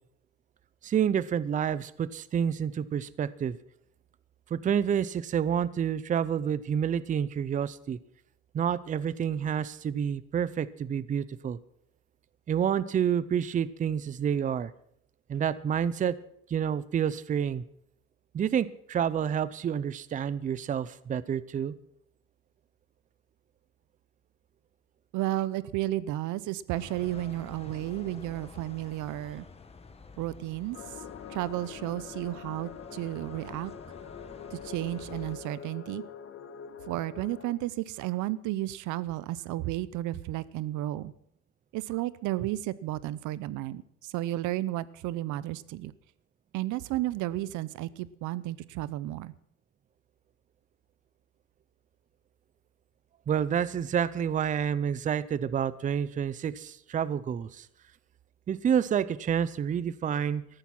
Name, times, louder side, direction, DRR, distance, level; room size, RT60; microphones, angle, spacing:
voice 1, 0.8-3.6 4.5-8.0 8.5-11.6 12.5-14.7 15.3-16.2 16.5-17.6 18.3-21.7 53.3-57.7 58.5-60.5, right 8 dB, 25° right, 18 dB, 0.5 m, -29 dB
voice 2, 25.1-29.4 30.2-30.8 31.3-33.7 34.5-36.0 36.9-41.1 41.7-45.9 46.5-49.3, right 15 dB, 90° right, 19 dB, 0.7 m, -33 dB
sound 1, 26.7-35.4, left 4 dB, 20° left, 1.2 m, -50 dB
sound 2, 30.7-37.5, left 7 dB, 45° left, 1.4 m, -44 dB
14.0 x 11.5 x 5.9 m, 0.69 s
cardioid pair, 150°, 29 cm